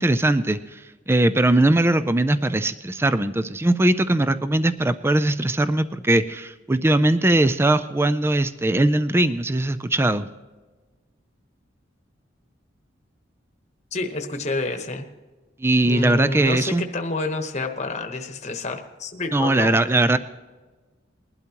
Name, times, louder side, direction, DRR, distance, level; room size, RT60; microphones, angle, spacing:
voice 1, 0.0-10.3 15.6-16.8 19.3-20.2, right 1 dB, 15° right, 12 dB, 0.4 m, -20 dB
voice 2, 13.9-15.1 15.8-19.8, left 2 dB, 35° left, 5 dB, 1.1 m, -29 dB
21.0 x 12.0 x 2.9 m, 1.2 s
head